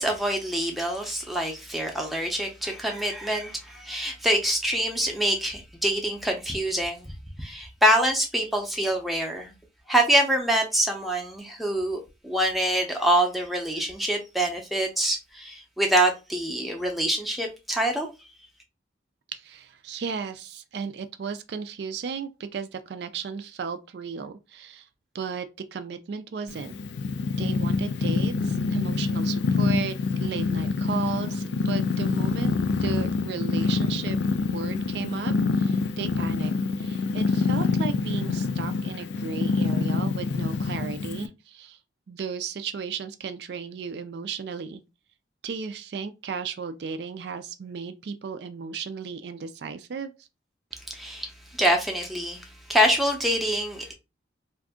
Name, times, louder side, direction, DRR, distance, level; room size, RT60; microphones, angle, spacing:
voice 1, 0.0-7.1 7.4-9.5 9.9-18.1 51.0-53.9, right 1 dB, ahead, 0.6 m, -25 dB
voice 2, 19.3-24.9 25.1-26.7 27.4-32.5 32.8-34.2 34.5-36.5 36.8-41.8 42.1-44.8 45.4-50.3, right 6 dB, 65° right, 0.3 m, -35 dB
Purr, 26.5-41.3, left 4 dB, 70° left, 0.3 m, -26 dB
2.6 x 2.4 x 3.6 m
head